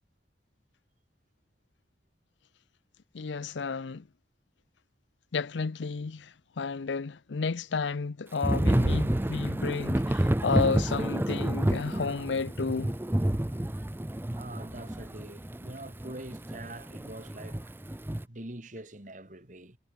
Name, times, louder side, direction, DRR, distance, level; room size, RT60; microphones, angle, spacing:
voice 1, 3.1-4.1 5.3-12.9, left 4 dB, 85° left, 0.6 m, -32 dB
Thunder / Rain, 8.4-18.2, right 1 dB, 10° right, 0.5 m, -29 dB
voice 2, 14.3-17.7 18.3-19.8, right 1 dB, 45° right, 2.7 m, -44 dB
head